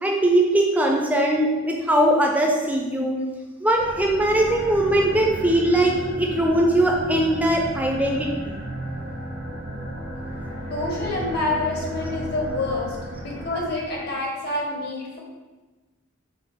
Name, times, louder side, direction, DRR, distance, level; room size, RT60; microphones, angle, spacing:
voice 1, 0.0-3.2 3.6-8.6, right 1 dB, 5° right, 1 dB, 0.4 m, -21 dB
sound 1, 3.7-14.2, equal, 75° right, 1.1 m, -34 dB
voice 2, 10.7-15.2, left 2 dB, 50° left, -2 dB, 1.0 m, -28 dB
5.3 x 2.0 x 4.0 m, 1.2 s
head